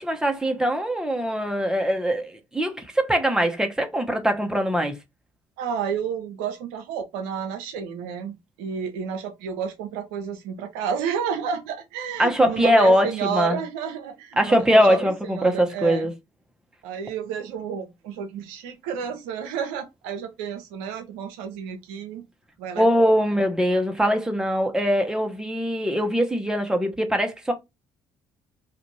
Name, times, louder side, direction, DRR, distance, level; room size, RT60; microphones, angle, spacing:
voice 1, 0.0-5.0 12.2-13.6 14.4-16.1 22.7-27.5, equal, 5° right, 0.9 m, -22 dB
voice 2, 5.6-16.1 16.8-22.2 22.6-23.1, right 7 dB, 80° right, 0.5 m, -31 dB
2.5 x 2.5 x 3.1 m
hypercardioid pair, 55°, 15 cm